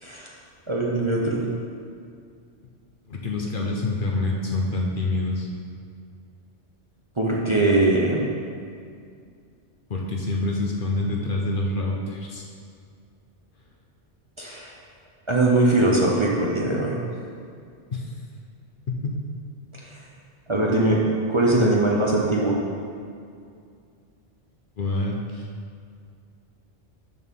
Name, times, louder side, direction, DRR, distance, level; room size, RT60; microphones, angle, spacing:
voice 1, 0.7-1.5 7.2-8.3 14.4-14.7 15.3-17.0 20.5-21.0 21.3-22.6, right 2 dB, 30° right, -4 dB, 0.8 m, -21 dB
voice 2, 3.1-5.5 9.9-12.5 17.9-18.1 18.9-19.1 24.8-25.5, left 2 dB, 50° left, -1 dB, 0.9 m, -26 dB
12.5 x 4.3 x 3.7 m, 2.3 s
omnidirectional pair, 1.2 m